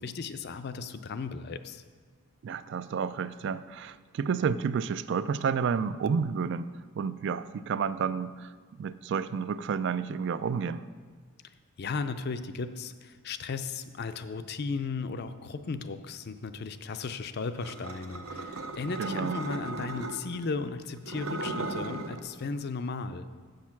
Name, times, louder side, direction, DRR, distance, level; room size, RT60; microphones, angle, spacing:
voice 1, 0.0-1.8 11.8-23.3, left 4 dB, 50° left, 11 dB, 0.4 m, -35 dB
voice 2, 2.4-6.7 7.0-10.8 19.0-19.4, right 6 dB, 55° right, 15 dB, 0.3 m, -30 dB
sound 1, 17.6-20.4 21.0-22.2, right 2 dB, 75° right, 0.7 m, -36 dB
8.2 x 6.5 x 5.9 m, 1.5 s
head